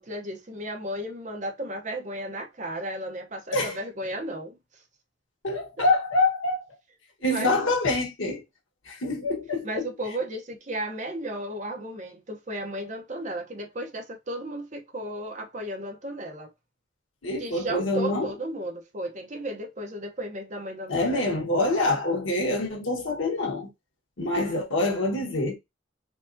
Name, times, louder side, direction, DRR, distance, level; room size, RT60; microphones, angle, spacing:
voice 1, 0.0-4.6 5.8-5.9 7.2-7.7 9.6-16.5 17.4-21.4, right 1 dB, 40° right, 0.8 m, -34 dB
voice 2, 5.4-6.6 7.2-8.4 8.9-9.9 17.2-18.3 20.9-23.7 24.2-25.5, left 2 dB, 85° left, 1.4 m, -26 dB
4.5 x 2.4 x 2.6 m
head